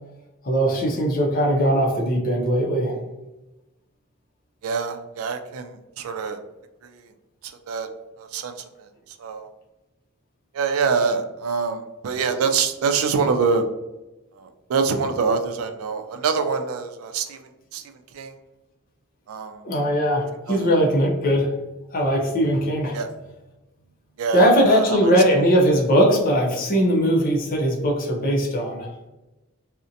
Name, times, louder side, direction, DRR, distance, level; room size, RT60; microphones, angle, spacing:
voice 1, 0.4-3.0 19.6-21.6 21.9-23.0 24.3-28.9, equal, 40° left, -1 dB, 0.5 m, -20 dB
voice 2, 4.6-6.4 7.4-7.9 8.2-8.5 8.8-8.9 9.2-9.5 10.5-13.7 14.4-17.4 17.7-17.8 18.1-18.3 19.3-19.6 20.5-20.7 22.9-23.1 24.2-25.1, right 5 dB, 85° right, 7 dB, 0.4 m, -25 dB
2.6 x 2.1 x 2.5 m, 1.0 s
head